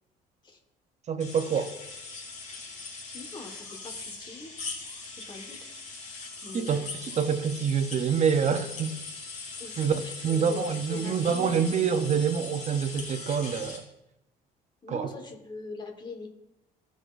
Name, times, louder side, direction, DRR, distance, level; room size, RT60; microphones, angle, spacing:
voice 1, 1.1-1.7 6.5-6.9 7.2-9.0 9.8-13.8 14.9-15.1, right 7 dB, 40° right, 0.9 m, -26 dB
sound 1, 1.2-13.8, left 4 dB, 45° left, 3.4 m, -40 dB
voice 2, 3.1-4.5 5.3-5.6 6.4-6.9 9.6-12.0 14.8-16.3, left 3 dB, 25° left, 1.6 m, -42 dB
15.0 x 6.3 x 2.6 m
cardioid pair, 110°, 17 cm